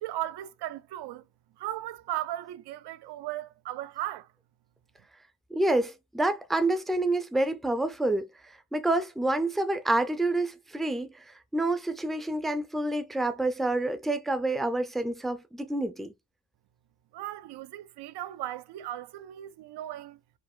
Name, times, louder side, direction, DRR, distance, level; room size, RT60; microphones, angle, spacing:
voice 1, 0.0-1.3 1.6-4.3 17.1-20.2, right 14 dB, 80° right, 0.5 m, -36 dB
voice 2, 5.5-16.1, right 2 dB, ahead, 0.4 m, -28 dB
4.8 x 2.5 x 3.6 m
wide cardioid pair, 175°, 39 cm